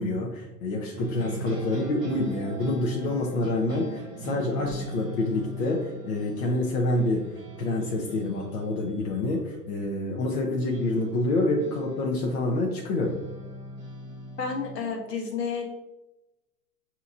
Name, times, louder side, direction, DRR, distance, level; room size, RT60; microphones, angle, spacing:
voice 1, 0.0-7.3 7.6-13.2, left 2 dB, 55° left, -1 dB, 0.8 m, -27 dB
sound 1, 0.9-9.4 10.7-15.0, right 1 dB, 10° right, 0.3 m, -39 dB
voice 2, 14.4-15.6, left 5 dB, 75° left, 1 dB, 1.2 m, -30 dB
5.6 x 2.9 x 2.5 m, 0.97 s
hypercardioid pair, 110°, 50 cm